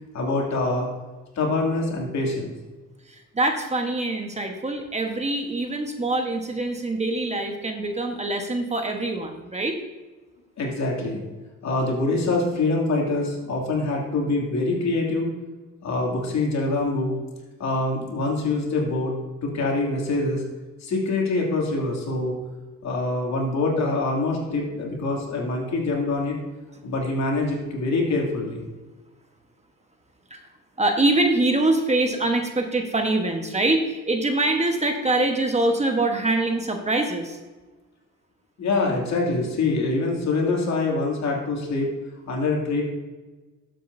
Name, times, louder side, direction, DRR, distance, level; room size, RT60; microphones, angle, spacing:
voice 1, 0.1-0.9 1.4-2.5 10.6-11.2 11.6-15.3 15.8-17.1 17.6-19.1 19.4-20.4 20.8-22.4 22.8-26.4 26.8-28.6 38.6-41.9 42.3-42.8, left 2 dB, 65° left, -1 dB, 2.6 m, -25 dB
voice 2, 3.1-9.8 30.3-30.5 30.8-37.4, right 2 dB, 20° right, 4 dB, 1.2 m, -24 dB
12.5 x 7.6 x 2.7 m, 1.2 s
cardioid pair, 90°, 30 cm